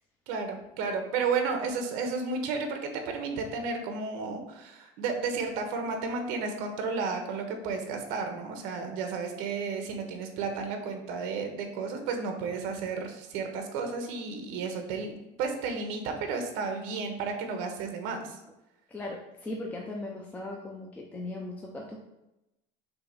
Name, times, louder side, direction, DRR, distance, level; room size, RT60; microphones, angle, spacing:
voice 1, 0.3-15.1 15.4-18.4, right 4 dB, 60° right, 5 dB, 1.2 m, -32 dB
voice 2, 18.9-22.1, left 2 dB, 10° left, -1 dB, 0.5 m, -38 dB
6.8 x 2.9 x 5.5 m, 0.93 s
cardioid pair, 175°, 16 cm